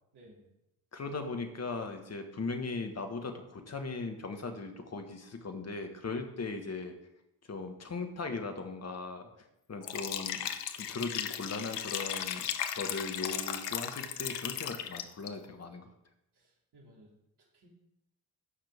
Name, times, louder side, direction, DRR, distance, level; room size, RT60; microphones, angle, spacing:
voice 1, 0.1-0.5 16.3-17.7, equal, 55° right, -2 dB, 2.9 m, -59 dB
voice 2, 0.9-6.9 7.5-9.3 9.7-10.4 10.7-12.5 12.7-15.9, left 3 dB, 35° left, 6 dB, 1.6 m, -38 dB
Liquid, 9.8-15.3, left 10 dB, 90° left, 0.5 m, -36 dB
14.5 x 5.8 x 3.5 m, 0.86 s
hypercardioid pair, 40°, 46 cm